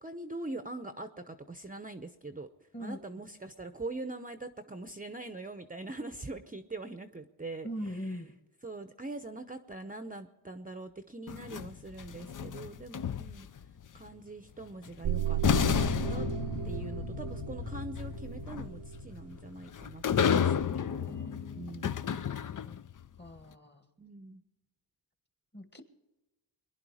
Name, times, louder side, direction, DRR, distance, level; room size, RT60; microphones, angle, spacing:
voice 1, 0.0-8.2 8.6-13.5 13.9-15.4 16.1-16.3 16.6-21.3 21.5-22.0 24.0-24.4, right 2 dB, 20° right, 9 dB, 0.8 m, -43 dB
voice 2, 7.6-8.3 20.6-21.8 22.6-22.8 23.2-23.9 25.5-25.8, equal, 20° left, 8 dB, 1.6 m, -42 dB
sound 1, 11.3-13.6 14.9-15.0 15.4-22.9, left 8 dB, 45° left, 0.6 m, -32 dB
sound 2, 15.0-19.3, right 10 dB, 65° right, 0.7 m, -35 dB
23.0 x 11.0 x 4.9 m, 1.1 s
cardioid pair, 80°, 46 cm